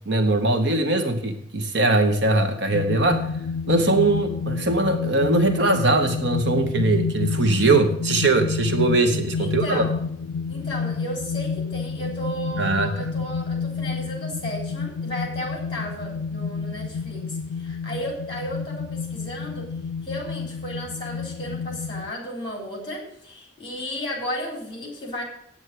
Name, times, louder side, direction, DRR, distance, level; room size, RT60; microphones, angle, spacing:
voice 1, 0.1-3.3 3.7-9.8 12.6-13.1, right 2 dB, 65° right, 7 dB, 1.1 m, -21 dB
sound 1, 2.7-22.1, left 5 dB, 85° left, 0.3 m, -29 dB
voice 2, 9.4-10.0 10.5-19.7 20.0-25.2, equal, 25° left, 0 dB, 3.8 m, -34 dB
9.0 x 8.2 x 7.7 m, 0.70 s
head